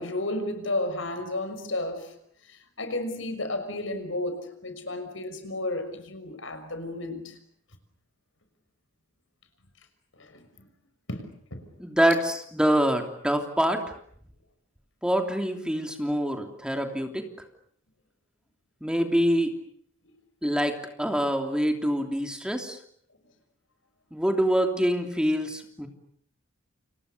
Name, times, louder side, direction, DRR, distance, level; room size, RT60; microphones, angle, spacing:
voice 1, 0.0-2.1 2.8-7.3 10.2-10.4 11.1-11.7, left 2 dB, 75° left, 6.2 m, -32 dB
voice 2, 11.8-13.8 15.0-17.2 18.8-19.5 20.4-22.8 24.1-25.9, equal, 5° right, 3.1 m, -25 dB
30.0 x 29.0 x 6.8 m
head